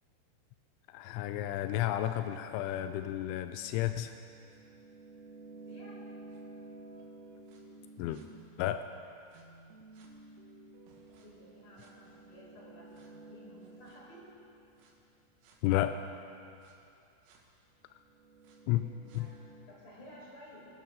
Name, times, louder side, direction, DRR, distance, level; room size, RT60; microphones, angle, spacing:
voice 1, 0.9-4.1 8.0-8.2 8.6-8.8 15.6-16.0 18.7-18.8 19.1-19.3, left 13 dB, 90° left, 9 dB, 2.7 m, -31 dB
sound 1, 2.0-8.8 9.3-15.0 15.4-15.6 16.6-16.7 17.3-17.4 17.9-19.7, right 2 dB, 85° right, 4.3 m, -53 dB
voice 2, 5.4-6.0 11.1-14.2 18.8-19.4 19.7-20.7, equal, 35° left, -6 dB, 5.4 m, -54 dB
24.5 x 12.0 x 3.8 m, 2.5 s
omnidirectional pair, 5.9 m